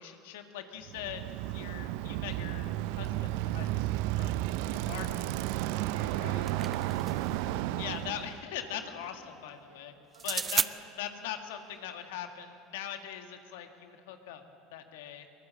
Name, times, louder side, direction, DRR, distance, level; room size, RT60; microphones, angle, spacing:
voice 1, 0.0-1.3 1.5-3.9 4.2-4.4 4.7-5.5 6.2-6.4 7.8-9.9 10.2-10.6 11.0-14.4 14.7-15.3, left 10 dB, 75° left, 6 dB, 1.8 m, -41 dB
Bicycle, 0.9-8.4, right 15 dB, 70° right, 0.6 m, -33 dB
voice 2, 5.8-7.4 8.7-9.0 9.6-10.5, right 3 dB, 85° right, 2 dB, 4.2 m, -54 dB
sound 1, 6.1-7.4 10.1-10.7, right 5 dB, 30° right, 0.6 m, -33 dB
22.5 x 20.5 x 7.7 m, 2.8 s
hypercardioid pair, 70°, 0 cm